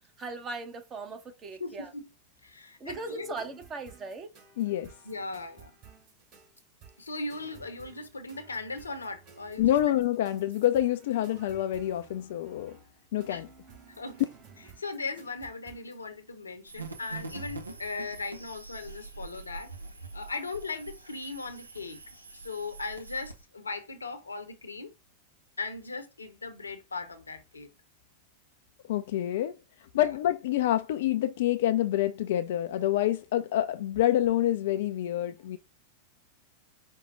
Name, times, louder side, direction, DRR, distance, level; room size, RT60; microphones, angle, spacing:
voice 1, 0.2-1.9 2.8-4.3, right 3 dB, 25° right, 0.9 m, -39 dB
voice 2, 1.6-2.1 2.4-3.3 5.0-5.7 7.0-9.7 13.3-13.4 13.9-14.2 14.8-19.7 20.1-22.0 22.3-24.9 25.6-27.7 29.9-30.1, left 3 dB, 80° left, 0.8 m, -38 dB
sound 1, 2.9-16.0, right 5 dB, 40° right, 2.9 m, -55 dB
voice 3, 4.6-4.9 9.6-12.7 13.1-13.5 28.9-29.5 29.9-35.6, left 12 dB, 55° left, 0.3 m, -27 dB
sound 2, 16.7-23.4, right 4 dB, 85° right, 0.6 m, -44 dB
5.4 x 2.2 x 3.9 m
figure-of-eight pair, 90°, 0 cm